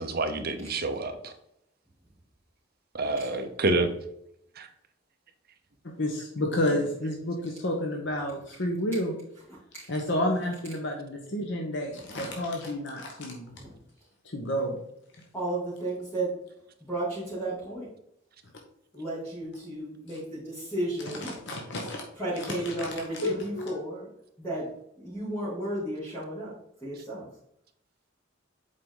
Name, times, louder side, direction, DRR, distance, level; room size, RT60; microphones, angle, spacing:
voice 1, 0.0-1.3 2.9-3.9 4.6-4.7, right 2 dB, 50° right, 7 dB, 0.9 m, -28 dB
voice 2, 5.8-9.1 9.9-13.5 14.3-14.8 21.2-22.0 22.6-22.9 23.2-23.8, left 1 dB, 60° left, 1 dB, 1.1 m, -30 dB
voice 3, 15.3-16.4 16.9-17.9 18.9-21.3 22.1-24.1 24.4-24.7 25.0-26.5 26.8-27.3, right 1 dB, 10° left, -11 dB, 2.7 m, -33 dB
7.6 x 4.8 x 3.9 m, 0.76 s
head